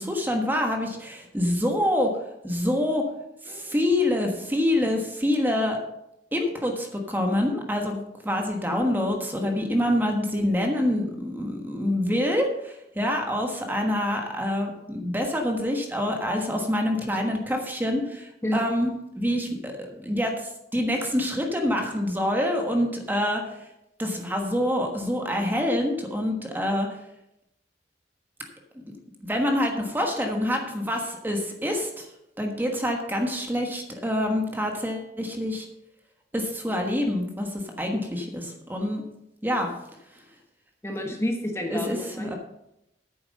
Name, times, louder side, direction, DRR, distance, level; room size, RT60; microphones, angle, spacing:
voice 1, 0.0-2.1 2.4-3.0 3.4-5.8 6.3-19.7 20.0-23.6 24.0-26.9 29.3-32.1 32.4-35.7 36.3-39.0 39.4-39.7 41.7-42.3, left 1 dB, 10° right, 2 dB, 1.3 m, -26 dB
voice 2, 40.8-42.3, left 1 dB, 15° left, 2 dB, 1.3 m, -29 dB
9.4 x 7.3 x 6.4 m, 0.85 s
head